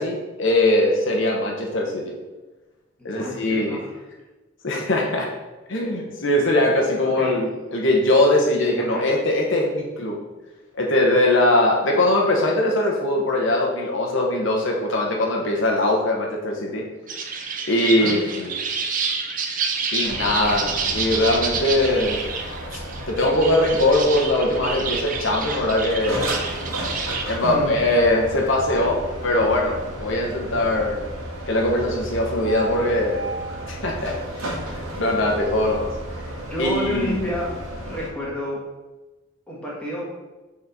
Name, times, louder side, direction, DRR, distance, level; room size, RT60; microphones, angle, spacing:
voice 1, 0.0-2.0 3.0-3.8 4.6-5.3 5.7-10.2 10.7-16.8 17.7-18.5 19.9-22.2 22.7-22.8 23.1-26.3 27.3-31.0 31.5-33.3 33.7-35.9 36.6-37.2, left 1 dB, 65° left, -1 dB, 0.9 m, -21 dB
voice 2, 3.0-3.9 7.0-7.4 8.8-9.1 17.8-18.2 27.4-27.8 32.8-32.9 36.3-37.5 37.8-38.6 39.5-40.1, left 1 dB, 5° left, -7 dB, 1.6 m, -30 dB
sound 1, 17.1-27.4, right 5 dB, 40° right, 0.6 m, -29 dB
sound 2, 20.0-38.1, right 1 dB, 90° right, 1.7 m, -33 dB
6.4 x 4.2 x 4.1 m, 1.2 s
head